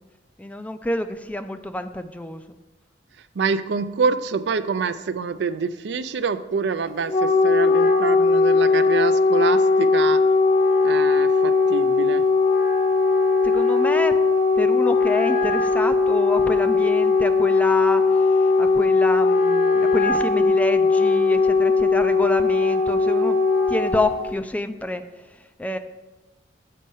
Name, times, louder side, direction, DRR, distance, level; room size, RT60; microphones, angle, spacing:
voice 1, 0.4-2.6 13.4-14.2 14.6-23.4 23.7-25.8, left 1 dB, 10° left, 10 dB, 0.3 m, -28 dB
voice 2, 3.3-10.2 10.8-12.2, right 5 dB, 70° right, 12 dB, 0.4 m, -26 dB
Wind instrument woodwind instrument, 6.9-24.3, left 4 dB, 40° left, 0.8 m, -19 dB
7.5 x 5.4 x 5.5 m, 1.1 s
head